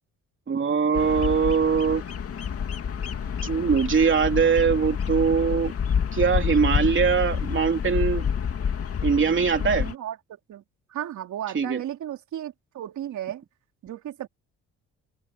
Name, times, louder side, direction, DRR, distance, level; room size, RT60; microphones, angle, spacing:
voice 1, 0.5-2.0 3.4-5.7 6.1-8.3 9.0-9.9 11.5-11.8, right 6 dB, 40° right, 3.1 m, -22 dB
Bird vocalization bird call bird song, 0.9-9.9, left 7 dB, 50° left, 2.9 m, -28 dB
sound 1, 2.0-8.5, left 14 dB, 85° left, 5.1 m, -54 dB
voice 2, 9.6-10.2 10.5-10.6 10.9-13.4 13.8-14.3, right 11 dB, 75° right, 3.3 m, -34 dB
cardioid pair, 90°, 30 cm